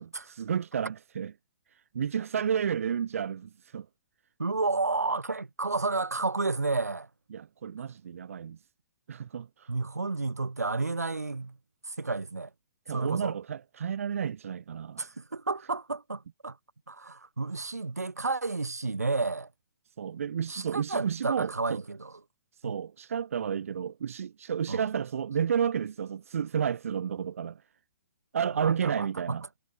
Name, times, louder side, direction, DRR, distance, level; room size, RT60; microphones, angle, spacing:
voice 1, 0.0-1.3 1.7-3.9 7.3-8.6 9.1-9.7 12.9-15.1 20.0-21.8 22.5-27.6 28.3-29.4, right 8 dB, 60° right, 2.5 m, -31 dB
voice 2, 4.4-7.1 9.7-11.6 11.9-12.5 12.9-13.4 15.0-16.6 16.9-19.5 20.5-22.1 22.6-22.8 24.7-24.8 28.6-29.4, right 3 dB, 80° right, 6.4 m, -31 dB
figure-of-eight pair, 125°, 8 cm